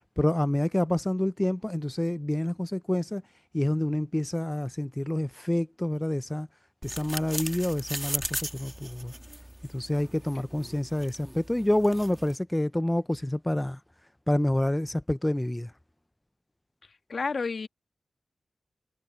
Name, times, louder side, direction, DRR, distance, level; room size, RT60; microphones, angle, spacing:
voice 1, 0.2-3.2 3.5-6.5 6.8-9.1 9.7-13.8 14.3-15.7, left 1 dB, 15° left, 0.5 m, -28 dB
sound 1, 6.8-12.4, equal, 10° right, 1.5 m, -38 dB
voice 2, 16.8-17.7, left 4 dB, 70° left, 2.0 m, -32 dB
cardioid pair, 45°, 0 cm